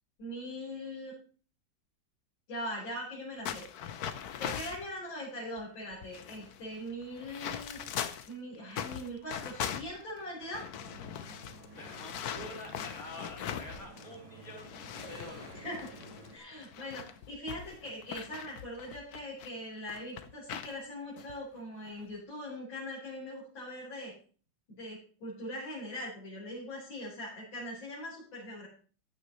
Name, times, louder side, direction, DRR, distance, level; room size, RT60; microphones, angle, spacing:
voice 1, 0.2-1.1 2.5-3.6 4.4-7.8 8.3-10.7 15.5-15.9 16.3-24.1 24.7-28.7, left 1 dB, 85° left, -8 dB, 5.1 m, -41 dB
sound 1, 3.4-4.9 5.6-5.7 5.9-8.3 8.7-14.1 14.4-19.5 19.9-20.7 21.2-21.3 21.9-22.1, left 9 dB, 60° left, 1.1 m, -41 dB
sound 2, 10.7-16.4, right 1 dB, 20° right, 1.8 m, -51 dB
voice 2, 11.8-14.7 15.1-15.6, left 1 dB, 45° left, -1 dB, 3.6 m, -47 dB
14.5 x 9.5 x 3.1 m, 0.41 s
omnidirectional pair, 2.1 m